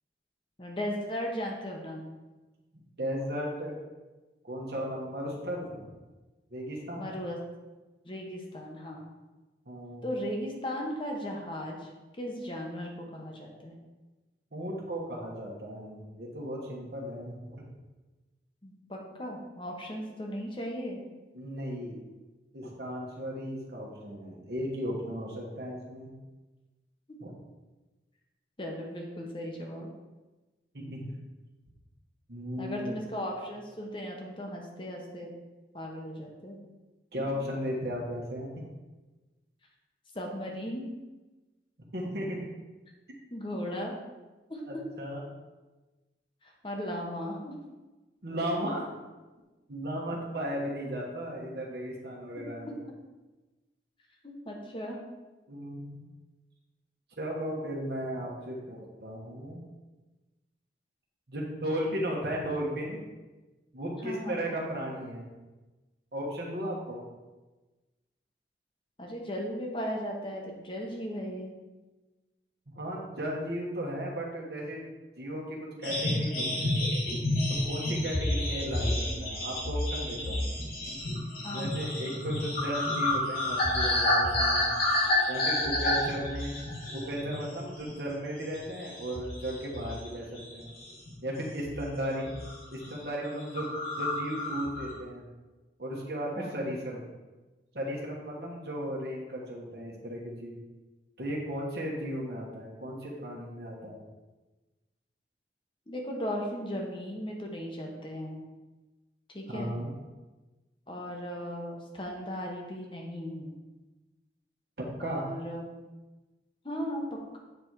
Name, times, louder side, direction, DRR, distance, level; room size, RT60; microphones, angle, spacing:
voice 1, 0.6-2.1 7.0-7.4 8.0-9.1 10.0-11.9 12.2-13.7 18.6-21.0 27.1-27.2 28.6-29.9 32.6-35.3 35.7-36.6 37.2-37.3 40.1-40.9 43.3-44.0 44.5-44.6 46.4-47.5 52.4-52.5 54.2-55.0 64.0-64.5 69.0-71.5 81.4-82.1 96.4-96.7 105.9-108.4 109.3-109.7 110.9-113.6 115.0-115.8 116.6-117.4, equal, 30° left, 0 dB, 1.0 m, -37 dB
voice 2, 3.0-3.8 4.4-5.9 6.5-7.2 9.7-10.0 14.5-17.6 21.3-22.0 22.5-26.1 27.2-27.3 30.7-31.1 32.3-32.9 37.1-38.5 41.9-42.5 44.7-45.2 48.2-48.9 49.7-52.8 55.5-56.0 57.2-59.6 61.3-63.0 63.7-65.3 66.1-67.0 72.7-74.8 75.2-76.9 77.6-80.5 81.5-84.7 85.3-86.5 86.9-90.7 91.2-92.3 92.7-93.7 94.0-95.2 95.8-97.0 97.7-100.6 101.2-104.0 109.5-109.9 114.8-115.3, equal, 60° right, -3 dB, 1.3 m, -35 dB
sound 1, 75.8-87.5 87.8-88.1 88.5-90.1 90.4-91.1 91.6-91.9 92.1-92.5 92.8-92.9 93.2-93.3 93.5-94.9, left 1 dB, 55° left, 2.0 m, -30 dB
7.8 x 4.1 x 4.7 m, 1.2 s
head